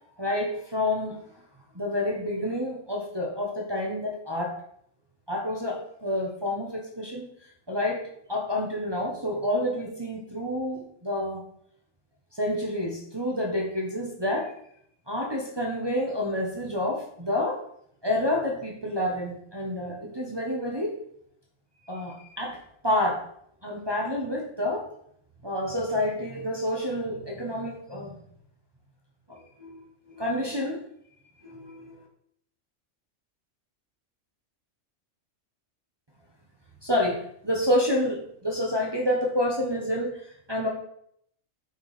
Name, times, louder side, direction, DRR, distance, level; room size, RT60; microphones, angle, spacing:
voice 1, 0.2-1.2 1.7-4.6 5.3-7.3 7.7-8.0 8.3-11.4 12.3-14.5 15.1-17.6 18.0-21.0 21.8-22.6 22.8-23.2 23.6-24.9 25.4-28.2 29.3-29.8 30.1-30.8 31.4-32.0 36.8-40.7, left 1 dB, 20° right, -2 dB, 1.2 m, -28 dB
9.2 x 4.9 x 5.0 m, 0.69 s
omnidirectional pair, 1.4 m